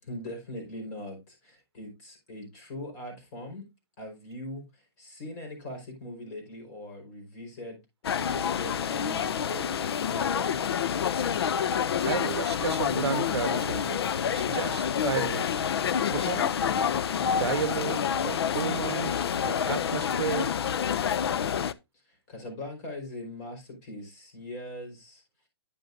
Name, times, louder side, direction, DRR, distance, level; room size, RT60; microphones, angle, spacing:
voice 1, 0.0-3.6 4.0-10.8 22.0-25.2, left 1 dB, 40° left, 4.9 m, -41 dB
sound 1, 8.0-21.7, left 8 dB, 75° left, 0.6 m, -28 dB
voice 2, 12.0-14.0 14.3-15.7 16.1-16.5 17.2-20.5, right 8 dB, 85° right, 0.7 m, -33 dB
9.8 x 7.9 x 2.6 m
hypercardioid pair, 145°, 13 cm